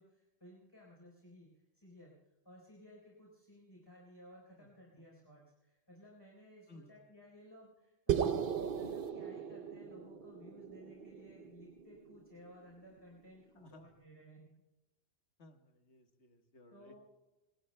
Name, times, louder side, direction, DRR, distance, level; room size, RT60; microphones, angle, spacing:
voice 1, 0.0-2.1 2.4-8.5 8.8-14.5 16.7-17.0, equal, 20° left, -3 dB, 4.0 m, -57 dB
sound 1, 8.1-12.5, right 8 dB, 55° right, 0.9 m, -37 dB
voice 2, 13.5-13.9 15.4-17.0, left 1 dB, 80° left, 6 dB, 1.6 m, -59 dB
26.5 x 22.0 x 2.2 m, 1.1 s
omnidirectional pair, 1.1 m